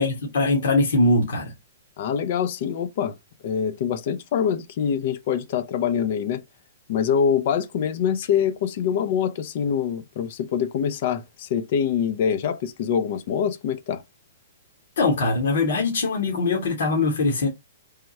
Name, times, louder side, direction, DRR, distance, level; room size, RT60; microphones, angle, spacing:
voice 1, 0.0-1.5 15.0-17.5, left 2 dB, 70° left, 1.4 m, -22 dB
voice 2, 2.0-3.2 3.4-6.4 6.9-14.0, left 8 dB, 55° left, 0.5 m, -24 dB
3.5 x 2.3 x 4.1 m
hypercardioid pair, 130°, 0 cm